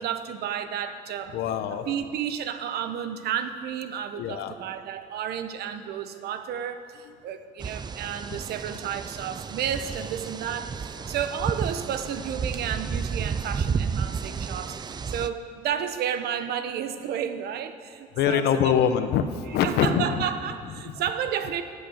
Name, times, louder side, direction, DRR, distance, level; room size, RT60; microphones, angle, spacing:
voice 1, 0.0-1.4 1.7-18.8 19.6-21.6, right 9 dB, 70° right, 10 dB, 1.0 m, -32 dB
voice 2, 1.3-1.9 4.2-4.5 18.2-20.2 20.9-21.0, left 8 dB, 80° left, 9 dB, 1.1 m, -24 dB
sound 1, 7.6-15.3, right 6 dB, 25° right, 0.4 m, -32 dB
14.5 x 8.4 x 7.9 m, 2.2 s
cardioid pair, 110°, 17 cm